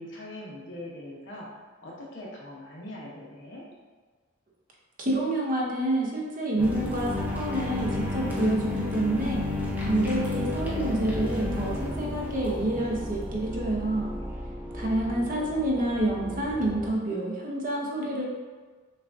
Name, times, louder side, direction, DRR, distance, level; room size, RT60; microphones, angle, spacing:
voice 1, 0.0-1.5 1.8-3.7 12.4-13.3 13.7-14.4, left 1 dB, 60° left, -4 dB, 0.9 m, -43 dB
voice 2, 5.0-9.4 9.8-14.1 14.7-18.2, right 1 dB, 40° right, -2 dB, 0.7 m, -28 dB
sound 1, 6.6-16.9, left 2 dB, 10° right, 0.6 m, -32 dB
6.3 x 2.3 x 2.5 m, 1.4 s
head